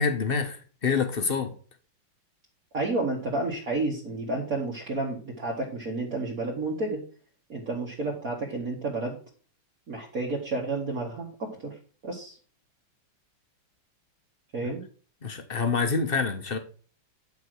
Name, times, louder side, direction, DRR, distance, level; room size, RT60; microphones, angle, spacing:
voice 1, 0.0-1.5 15.2-16.6, left 5 dB, 40° left, 0.9 m, -27 dB
voice 2, 2.7-7.0 7.5-9.2 9.9-12.4 14.5-14.8, right 2 dB, 45° right, 2.1 m, -31 dB
10.5 x 4.8 x 6.1 m
omnidirectional pair, 2.2 m